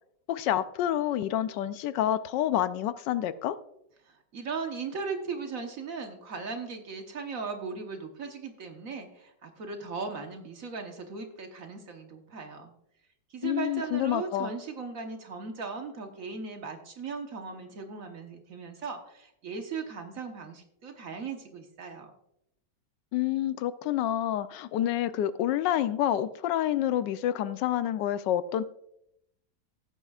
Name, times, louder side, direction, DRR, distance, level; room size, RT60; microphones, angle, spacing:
voice 1, 0.3-3.6 13.4-14.5 23.1-28.6, left 11 dB, 80° left, 13 dB, 1.2 m, -28 dB
voice 2, 4.0-12.7 13.3-22.1, right 4 dB, 50° right, 4 dB, 1.5 m, -38 dB
16.0 x 9.0 x 2.4 m, 0.79 s
omnidirectional pair, 1.9 m